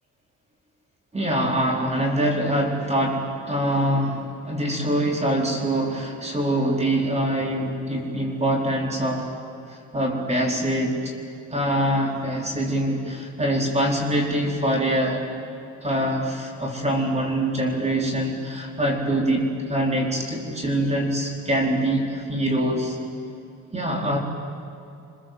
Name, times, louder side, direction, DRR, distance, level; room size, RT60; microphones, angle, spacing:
voice 1, 1.1-9.3 9.7-11.1 11.5-15.2 15.8-23.0 23.7-24.2, right 1 dB, 20° right, 0 dB, 4.5 m, -24 dB
28.5 x 25.5 x 7.8 m, 2.6 s
cardioid pair, 90°, 30 cm